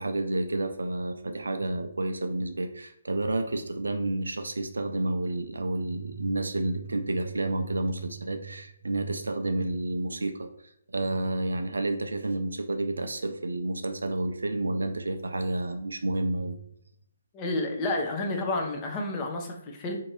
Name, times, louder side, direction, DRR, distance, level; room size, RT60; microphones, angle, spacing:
voice 1, 0.0-10.5 10.9-16.6, right 2 dB, 70° right, 7 dB, 0.3 m, -30 dB
voice 2, 17.3-20.0, left 2 dB, 25° left, 1 dB, 0.5 m, -30 dB
2.6 x 2.6 x 3.0 m, 0.73 s
figure-of-eight pair, 135°, 0 cm